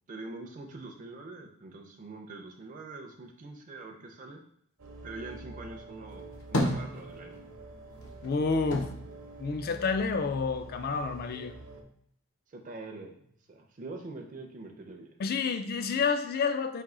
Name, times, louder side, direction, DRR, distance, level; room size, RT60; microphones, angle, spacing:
voice 1, 0.1-4.4 5.0-7.4 12.5-13.1 13.5-15.2, right 3 dB, 35° right, 2 dB, 0.4 m, -44 dB
sound 1, 4.8-11.8, right 2 dB, 75° right, 0.7 m, -46 dB
sound 2, 6.1-7.6 7.9-10.3 10.6-11.5, left 1 dB, 75° left, 0.8 m, -34 dB
voice 2, 8.2-8.9 9.4-11.5 15.2-16.8, left 4 dB, 45° left, 9 dB, 0.3 m, -29 dB
4.2 x 2.6 x 3.7 m, 0.66 s
head